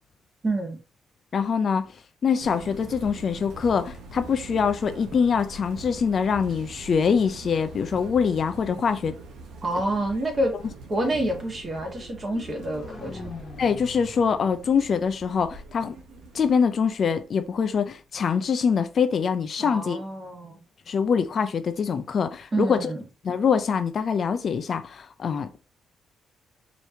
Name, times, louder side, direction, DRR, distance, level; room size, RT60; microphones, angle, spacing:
voice 1, 0.4-0.8 9.6-10.5 10.9-13.3 19.6-20.6 22.5-23.0, right 1 dB, 35° right, 1.5 m, -28 dB
voice 2, 1.3-1.9 2.2-9.1 13.6-16.0 16.3-20.0 20.9-22.9 23.2-25.5, left 6 dB, 50° left, 0.5 m, -24 dB
sound 1, 2.4-16.5, right 3 dB, 80° right, 1.0 m, -43 dB
sound 2, 12.0-16.0, left 3 dB, 30° left, 1.1 m, -43 dB
4.9 x 3.0 x 2.8 m
cardioid pair, 90°, 0 cm